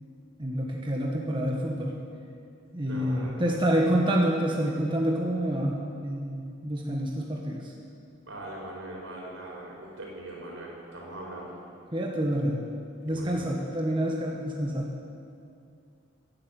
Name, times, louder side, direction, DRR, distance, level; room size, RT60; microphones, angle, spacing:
voice 1, 0.4-2.0 2.7-7.7 11.9-12.6 13.0-14.9, right 1 dB, 25° right, -1 dB, 1.4 m, -27 dB
voice 2, 2.8-4.0 8.2-11.6 13.1-13.5, right 1 dB, 80° right, -2 dB, 4.9 m, -41 dB
15.5 x 10.5 x 8.2 m, 2.5 s
head